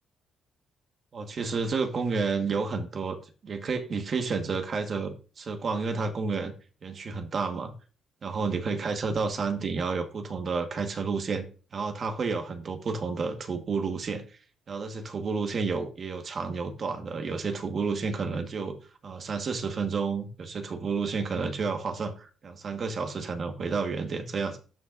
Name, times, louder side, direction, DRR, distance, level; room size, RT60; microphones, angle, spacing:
voice 1, 1.1-3.2 3.4-6.5 6.8-7.7 8.2-14.2 14.7-18.8 19.0-24.6, right 4 dB, 50° right, 6 dB, 1.4 m, -30 dB
12.5 x 5.8 x 2.6 m, 0.38 s
cardioid pair, 90°, 0 cm